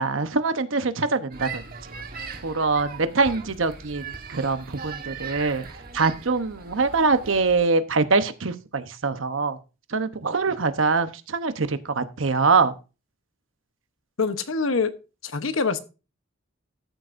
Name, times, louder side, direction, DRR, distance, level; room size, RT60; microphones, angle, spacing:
voice 1, 0.0-1.6 2.4-5.6 5.9-9.6 9.9-12.7, right 4 dB, 75° right, 0.9 m, -24 dB
sound 1, 1.3-7.6, right 5 dB, 45° right, 1.4 m, -39 dB
voice 2, 14.2-14.9 15.2-15.8, left 4 dB, 85° left, 1.0 m, -24 dB
14.0 x 8.0 x 2.6 m
head